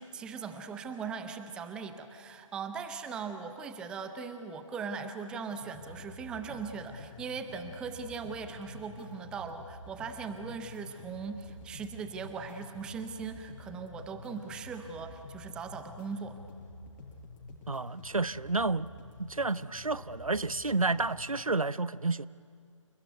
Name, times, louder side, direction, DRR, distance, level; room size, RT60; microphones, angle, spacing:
voice 1, 0.0-16.4, right 5 dB, 5° right, 0.6 m, -39 dB
sound 1, 5.5-21.5, left 2 dB, 25° left, 6.6 m, -49 dB
voice 2, 17.7-18.9 19.2-22.3, right 3 dB, 90° right, 0.7 m, -30 dB
28.5 x 20.0 x 9.4 m
figure-of-eight pair, 145°, 17 cm